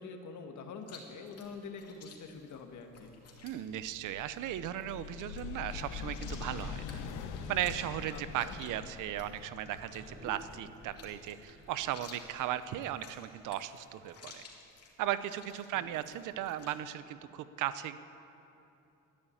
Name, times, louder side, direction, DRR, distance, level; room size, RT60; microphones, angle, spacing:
voice 1, 0.0-3.1 8.1-8.5 15.7-15.9, left 4 dB, 70° left, 4 dB, 1.7 m, -46 dB
Chewing mastication, 0.8-16.8, left 4 dB, 55° left, 2.7 m, -55 dB
sound 1, 2.6-13.0, left 6 dB, 90° left, 1.1 m, -45 dB
voice 2, 3.4-7.0 7.5-14.4 15.0-18.0, right 12 dB, 90° right, 13 dB, 0.7 m, -37 dB
sound 2, 9.6-14.2, right 2 dB, 35° right, 3.4 m, -55 dB
13.0 x 11.5 x 8.5 m, 2.8 s
cardioid pair, 90°, 30 cm